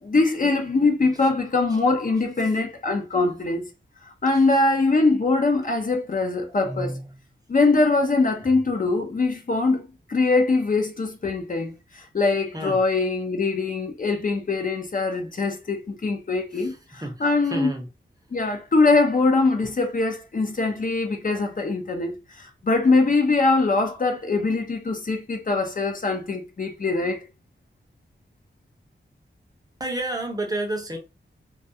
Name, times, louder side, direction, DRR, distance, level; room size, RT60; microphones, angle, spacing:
voice 1, 0.0-3.7 4.0-6.9 7.5-9.8 10.1-17.7 18.3-27.2, left 3 dB, 45° left, 0.6 m, -22 dB
voice 2, 6.6-7.2 8.5-8.6 12.5-12.8 16.5-17.9 29.8-31.0, right 1 dB, 20° right, 0.7 m, -31 dB
2.2 x 2.2 x 2.7 m
wide cardioid pair, 80°, 20 cm